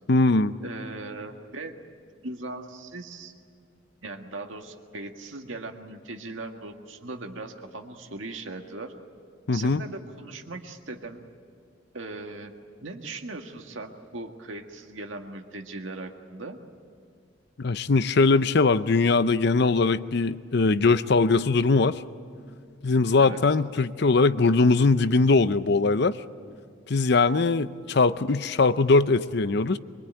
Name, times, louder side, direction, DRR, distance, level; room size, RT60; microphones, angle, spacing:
voice 1, 0.1-0.5 9.5-9.8 17.6-22.0 22.8-26.2 26.9-29.8, left 3 dB, 60° left, 14 dB, 0.7 m, -21 dB
voice 2, 0.6-1.7 2.2-3.3 4.0-8.9 9.5-11.3 11.9-16.6 23.2-23.4, right 2 dB, 85° right, 4 dB, 1.9 m, -39 dB
24.0 x 23.5 x 9.1 m, 2.3 s
head